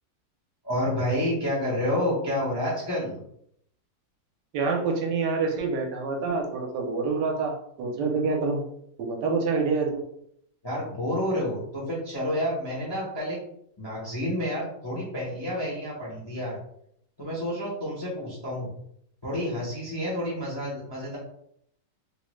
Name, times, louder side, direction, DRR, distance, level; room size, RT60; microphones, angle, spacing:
voice 1, 0.6-3.1 10.6-13.4 13.8-16.6 17.2-18.7 19.2-21.2, left 1 dB, 30° left, -6 dB, 0.5 m, -29 dB
voice 2, 4.5-8.6 9.0-10.0, right 4 dB, 75° right, 1 dB, 1.2 m, -27 dB
3.6 x 2.1 x 3.0 m, 0.71 s
omnidirectional pair, 2.0 m